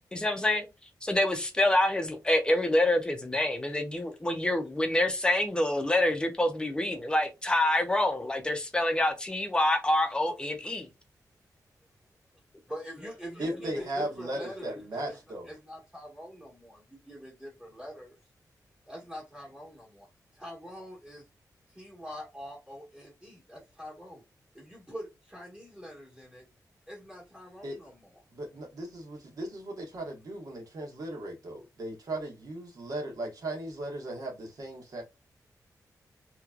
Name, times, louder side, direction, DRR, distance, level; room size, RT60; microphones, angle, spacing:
voice 1, 0.1-0.7 1.0-10.9, left 1 dB, 15° left, 0.7 m, -26 dB
voice 2, 12.7-15.2 15.4-18.2 18.9-20.1 20.3-21.2 21.7-24.2 24.5-26.4 26.9-28.2, equal, 10° right, 1.3 m, -44 dB
voice 3, 13.4-15.5 27.6-27.8 28.3-35.0, right 1 dB, 65° right, 1.4 m, -37 dB
3.1 x 3.0 x 2.3 m
wide cardioid pair, 155°, 7 cm